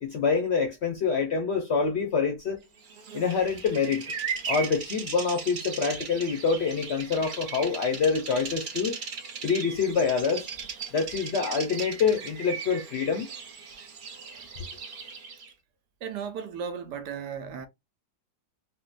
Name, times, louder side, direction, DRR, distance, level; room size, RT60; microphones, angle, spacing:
voice 1, 0.0-2.6 3.1-4.1 4.5-9.0 9.4-10.5 10.9-13.3, left 5 dB, 65° left, 0.6 m, -26 dB
Bird vocalization bird call bird song, 2.8-15.5, right 6 dB, 70° right, 0.4 m, -38 dB
voice 2, 16.0-17.7, right 7 dB, 90° right, 1.2 m, -35 dB
3.7 x 2.1 x 2.4 m
omnidirectional pair, 1.7 m